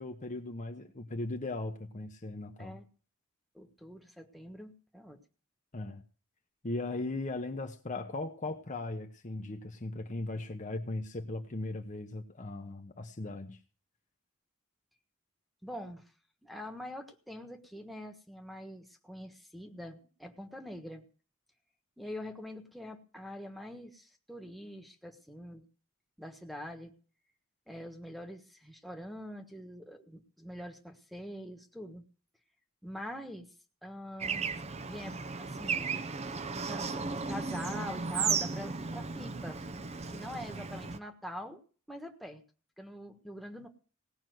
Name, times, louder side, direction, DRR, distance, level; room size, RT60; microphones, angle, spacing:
voice 1, 0.0-2.8 5.7-6.0 6.6-13.6, left 2 dB, 35° left, 1.0 m, -38 dB
voice 2, 3.5-5.2 15.6-16.0 16.4-21.0 22.0-25.6 26.2-26.9 27.7-32.0 32.8-33.5 33.8-34.5 34.8-35.9 36.5-39.6 40.1-41.6 41.9-42.4 42.8-43.7, equal, ahead, 1.4 m, -44 dB
Bird / Traffic noise roadway noise, 34.2-41.0, right 5 dB, 30° right, 0.7 m, -35 dB
18.0 x 6.0 x 7.8 m
head